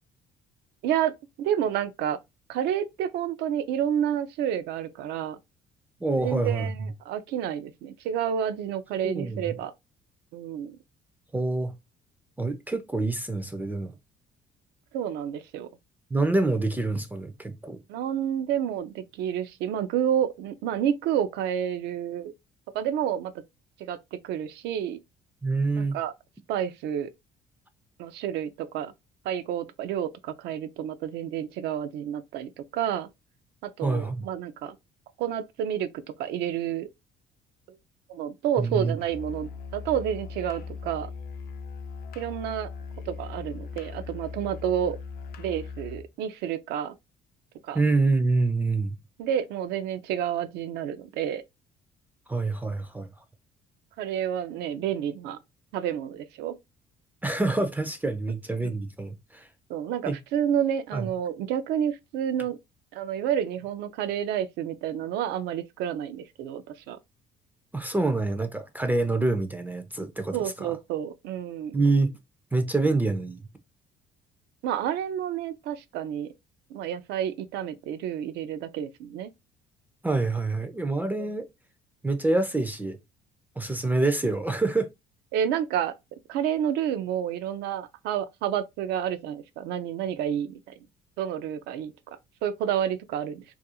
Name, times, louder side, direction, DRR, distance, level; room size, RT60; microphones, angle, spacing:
voice 1, 1.4-2.2 2.5-5.4 6.2-9.7 10.3-10.8 14.9-15.7 17.9-22.3 22.7-23.3 23.8-24.0 24.2-25.0 25.8-26.1 26.5-27.1 28.0-28.9 29.2-33.1 33.6-34.8 35.2-35.9 36.2-36.9 38.1-41.1 42.2-42.7 43.1-45.0 45.4-46.9 47.6-47.8 49.2-51.4 54.0-55.4 55.7-56.5 58.6-58.7 59.7-62.6 62.9-67.0 70.3-71.8 74.6-76.3 76.7-79.3 81.2-81.3 85.3-85.9 86.3-90.7 91.2-91.9 92.4-93.4, right 9 dB, 80° right, 0.4 m, -29 dB
voice 2, 6.0-6.7 9.0-9.4 11.3-11.7 12.4-13.9 16.1-17.8 25.4-26.0 33.8-34.3 38.6-39.0 47.7-49.0 52.3-53.1 57.2-59.5 60.1-60.2 60.9-61.1 67.7-70.7 71.7-72.1 72.5-73.4 80.0-81.5 82.0-83.0 83.6-84.9, right 3 dB, 10° right, 0.3 m, -26 dB
Musical instrument, 39.0-46.1, left 5 dB, 65° left, 0.4 m, -39 dB
2.4 x 2.3 x 2.7 m
cardioid pair, 110°, 17 cm